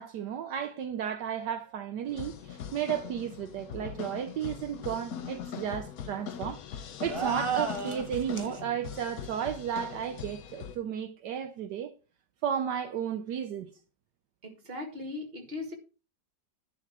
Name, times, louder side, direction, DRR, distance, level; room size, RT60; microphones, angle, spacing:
voice 1, 0.0-6.6 7.0-11.9 12.4-13.7, right 9 dB, 75° right, 1.4 m, -33 dB
sound 1, 2.1-10.8, left 8 dB, 60° left, 1.2 m, -41 dB
sound 2, 7.1-8.6, right 4 dB, 20° right, 1.5 m, -33 dB
voice 2, 14.4-15.7, left 3 dB, 35° right, 2.2 m, -38 dB
11.0 x 4.8 x 6.1 m
omnidirectional pair, 1.9 m